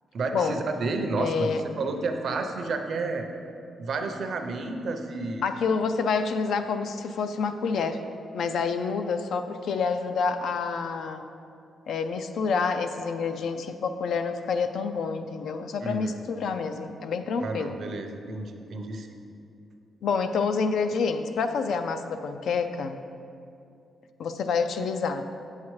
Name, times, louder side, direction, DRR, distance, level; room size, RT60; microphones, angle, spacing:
voice 1, 0.1-3.3 3.8-5.4 15.8-16.2 17.4-19.1, right 3 dB, 50° right, 5 dB, 0.5 m, -31 dB
voice 2, 1.2-1.6 5.4-8.0 8.3-11.2 11.9-17.8 20.0-23.0 24.2-25.2, left 5 dB, 65° left, 9 dB, 0.4 m, -28 dB
8.2 x 7.3 x 3.1 m, 2.6 s
wide cardioid pair, 180°, 0 cm